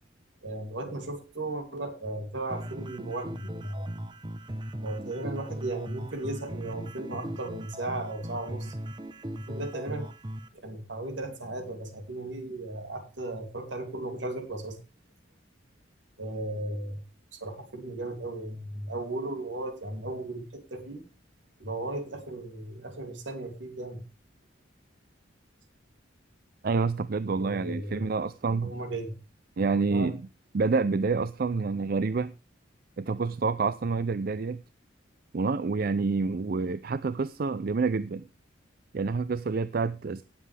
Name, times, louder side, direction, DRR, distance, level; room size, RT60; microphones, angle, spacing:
voice 1, 0.4-4.0 4.8-8.7 9.3-10.1 10.6-14.8 16.2-17.0 17.3-21.0 21.6-24.0 27.3-28.1 28.6-29.1 29.9-30.1, right 2 dB, 75° right, 6 dB, 2.8 m, -36 dB
sound 1, 2.5-10.5, right 1 dB, 25° right, 0.9 m, -39 dB
voice 2, 26.6-28.7 29.6-30.2 30.5-32.3 33.0-34.6 35.3-38.2 38.9-40.2, right 4 dB, 50° right, 14 dB, 0.4 m, -28 dB
17.5 x 7.5 x 3.4 m, 0.31 s
head